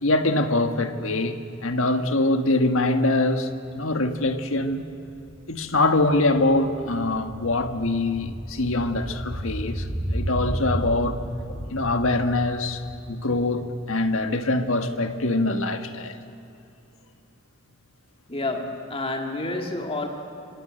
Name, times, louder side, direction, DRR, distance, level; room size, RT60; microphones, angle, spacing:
voice 1, 0.0-4.9 5.5-11.2 11.5-12.8 13.1-16.2, left 2 dB, 70° left, 1.6 m, -24 dB
sound 1, 4.6-14.4 14.6-14.7, right 1 dB, 25° right, 4.1 m, -34 dB
voice 2, 18.3-20.1, left 2 dB, 25° left, 2.2 m, -29 dB
26.0 x 26.0 x 7.8 m
head